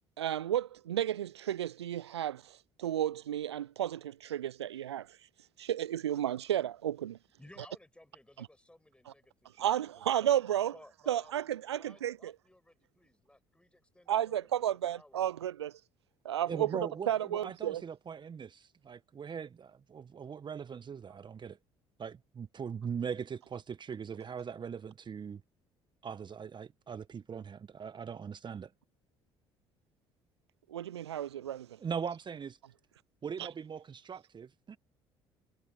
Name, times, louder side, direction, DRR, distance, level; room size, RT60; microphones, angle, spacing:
voice 1, 0.2-5.2 5.6-7.2 8.4-8.5 9.1-9.2 9.6-10.7 11.1-12.3 14.1-15.8 16.2-16.7 17.1-17.8 30.7-31.8 33.4-33.5, right 11 dB, 80° right, 0.6 m, -33 dB
voice 2, 7.4-11.4 11.8-15.3, left 1 dB, 5° left, 6.6 m, -58 dB
voice 3, 16.5-21.6 22.0-25.4 26.0-28.7 31.8-32.6 33.2-34.8, right 6 dB, 35° right, 1.3 m, -40 dB
figure-of-eight pair, 55°, 14 cm